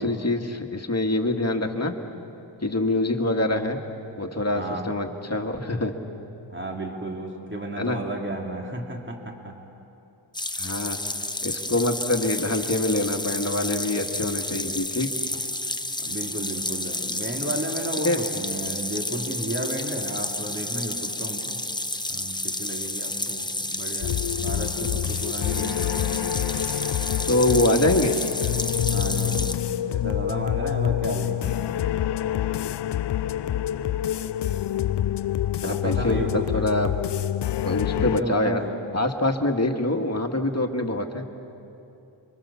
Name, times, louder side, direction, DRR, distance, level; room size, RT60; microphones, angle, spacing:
voice 1, 0.0-1.9 2.6-3.8 4.2-6.0 7.8-8.0 10.6-11.0 11.4-15.1 18.0-18.2 27.3-28.2 35.6-36.2 36.5-36.9 37.6-38.6 38.9-41.3, left 1 dB, 35° left, 4 dB, 2.1 m, -25 dB
voice 2, 4.5-4.9 6.5-9.6 15.3-15.4 16.0-21.7 22.1-26.0 28.9-31.6 35.6-36.7 37.9-38.7, right 1 dB, 25° right, 1 dB, 3.0 m, -33 dB
sound 1, 10.3-29.5, left 1 dB, 10° left, 1.0 m, -31 dB
sound 2, 24.0-38.2, left 11 dB, 60° left, 0.5 m, -27 dB
30.0 x 24.0 x 7.1 m, 2.8 s
cardioid pair, 65°, 47 cm